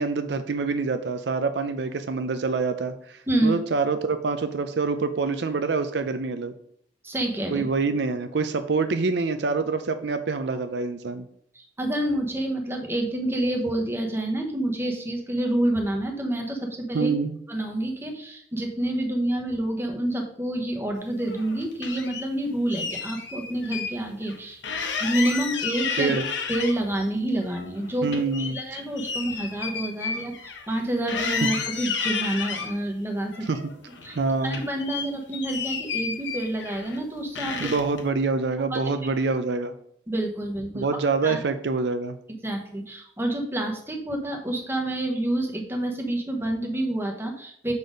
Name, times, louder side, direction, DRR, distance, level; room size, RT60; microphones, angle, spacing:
voice 1, 0.0-6.5 7.5-11.2 16.9-17.4 26.0-26.2 28.0-28.8 33.5-33.6 34.2-34.6 37.6-39.7 40.7-42.2, right 4 dB, 65° right, 9 dB, 0.5 m, -26 dB
voice 2, 3.3-3.6 7.0-7.6 11.5-17.1 17.5-24.6 25.0-26.1 26.5-30.4 30.7-33.4 34.0-34.2 34.4-37.7 38.7-38.8 40.1-41.4 42.4-47.7, right 1 dB, 15° right, 2 dB, 1.0 m, -28 dB
sound 1, 21.2-22.3 22.7-23.9 24.2-24.3 24.6-27.0 27.4-30.8 31.1-32.7 33.3-34.2 34.5-37.0 37.4-38.0, left 5 dB, 80° left, 1.0 m, -32 dB
6.7 x 4.1 x 5.1 m, 0.67 s
head